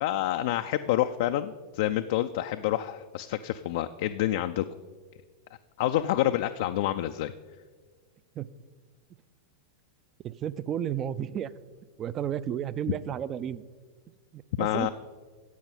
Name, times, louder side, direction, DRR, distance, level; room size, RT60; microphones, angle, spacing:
voice 1, 0.0-4.6 5.8-7.3 14.6-14.9, left 13 dB, 50° left, 8 dB, 0.3 m, -28 dB
voice 2, 10.2-11.5 12.0-13.6 14.3-14.9, right 9 dB, 30° right, 18 dB, 0.4 m, -32 dB
14.0 x 8.6 x 4.1 m, 1.5 s
figure-of-eight pair, 90°, 0 cm